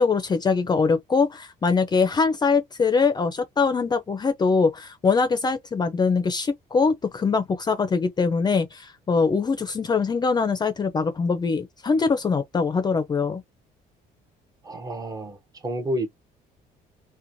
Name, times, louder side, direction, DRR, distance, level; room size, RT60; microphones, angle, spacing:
voice 1, 0.0-13.4, left 4 dB, 25° left, 0.4 m, -23 dB
voice 2, 14.6-16.1, right 1 dB, 20° right, 0.6 m, -30 dB
2.9 x 2.1 x 2.5 m
cardioid pair, 110°, 17 cm